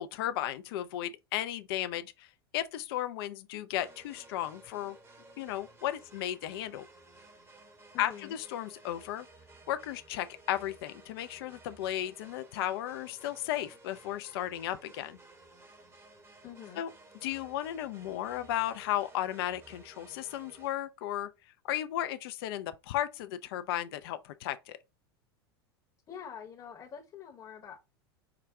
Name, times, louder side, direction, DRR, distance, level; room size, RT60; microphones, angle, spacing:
voice 1, 0.0-2.3 2.5-5.0 5.4-6.9 8.0-9.3 9.7-15.2 16.8-16.9 17.2-21.3 21.6-24.8, left 12 dB, 70° left, 0.4 m, -35 dB
sound 1, 3.8-20.7, right 2 dB, 20° right, 0.9 m, -56 dB
voice 2, 7.9-8.4 16.4-16.8 26.1-27.8, left 8 dB, 35° left, 0.9 m, -46 dB
4.7 x 2.2 x 3.4 m
hypercardioid pair, 90°, 13 cm